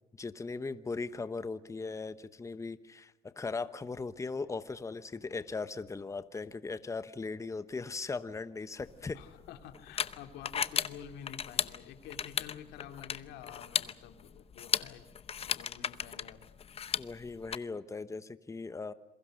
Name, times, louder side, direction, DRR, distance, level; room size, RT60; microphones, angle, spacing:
voice 1, 0.2-9.2 17.0-18.9, left 4 dB, 20° left, 13 dB, 1.0 m, -38 dB
sound 1, 8.8-17.5, left 7 dB, 35° left, 0.8 m, -36 dB
voice 2, 9.1-15.0 15.4-16.4, left 9 dB, 90° left, 6 dB, 2.5 m, -49 dB
28.0 x 22.5 x 6.5 m, 0.97 s
cardioid pair, 110°, 17 cm